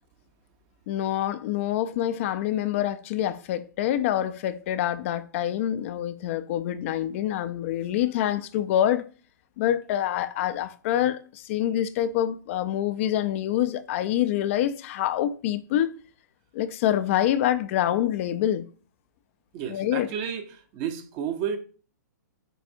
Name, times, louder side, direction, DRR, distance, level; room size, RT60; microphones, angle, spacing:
voice 1, 0.9-9.0 9.6-15.9 16.5-18.6 19.7-20.1, left 11 dB, 45° left, 0.3 m, -26 dB
voice 2, 19.5-21.6, right 8 dB, 35° right, 0.7 m, -32 dB
7.6 x 2.6 x 2.6 m
hypercardioid pair, 135°, 10 cm